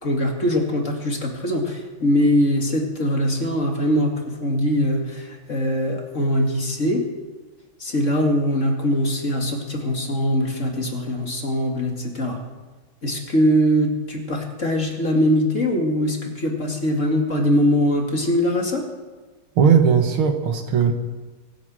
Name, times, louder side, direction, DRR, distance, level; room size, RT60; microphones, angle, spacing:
voice 1, 0.0-7.0 7.8-12.4 13.0-18.8, equal, 35° left, 1 dB, 2.5 m, -22 dB
voice 2, 19.6-20.9, right 7 dB, 80° right, 6 dB, 2.2 m, -17 dB
23.5 x 9.0 x 6.4 m, 1.3 s
omnidirectional pair, 2.3 m